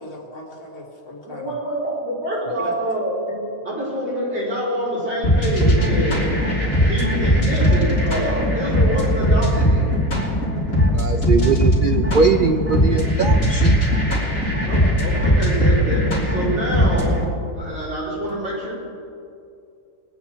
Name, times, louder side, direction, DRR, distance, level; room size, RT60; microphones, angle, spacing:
voice 1, 0.0-1.5 2.6-2.7, left 2 dB, 85° left, -3 dB, 3.2 m, -37 dB
voice 2, 1.2-3.4 3.6-6.2 6.9-9.9 14.7-17.2 17.5-18.7, right 1 dB, 50° right, -8 dB, 4.8 m, -26 dB
sound 1, 5.2-17.2, equal, 60° left, 3.6 m, -19 dB
voice 3, 10.9-13.8, right 5 dB, 70° right, 5 dB, 0.4 m, -21 dB
23.0 x 9.2 x 4.4 m, 2.6 s
omnidirectional pair, 1.6 m